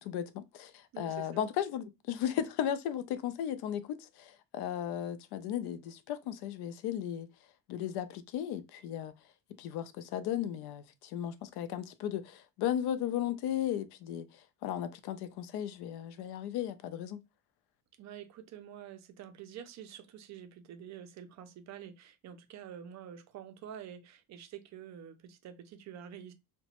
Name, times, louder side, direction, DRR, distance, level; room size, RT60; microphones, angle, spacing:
voice 1, 0.0-7.3 7.7-9.1 9.6-14.3 14.6-17.2, left 10 dB, 70° left, 0.5 m, -35 dB
voice 2, 0.9-1.4 18.0-26.3, right 9 dB, 45° right, 0.4 m, -48 dB
2.8 x 2.2 x 2.9 m
cardioid pair, 160°, 40 cm